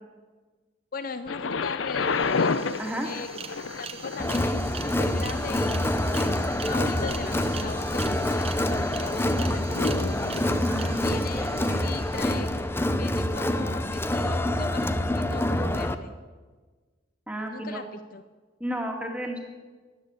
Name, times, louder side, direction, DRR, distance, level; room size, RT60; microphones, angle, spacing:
voice 1, 0.9-2.6 3.0-3.3 3.8-9.8 11.0-11.5 11.8-12.6 13.0-16.2 17.5-18.2, left 4 dB, 50° left, 11 dB, 0.6 m, -38 dB
Thunder, 1.3-13.1 13.9-14.0, left 4 dB, 90° left, 0.7 m, -33 dB
sound 1, 1.7-1.8 1.9-12.8, right 6 dB, 30° right, 1.2 m, -43 dB
Crowd, 4.2-15.9, left 1 dB, 10° left, 0.7 m, -26 dB
voice 2, 10.6-11.1 11.3-11.8 17.3-17.8 18.6-19.4, equal, 5° right, 2 dB, 2.2 m, -33 dB
14.0 x 10.5 x 9.7 m, 1.4 s
head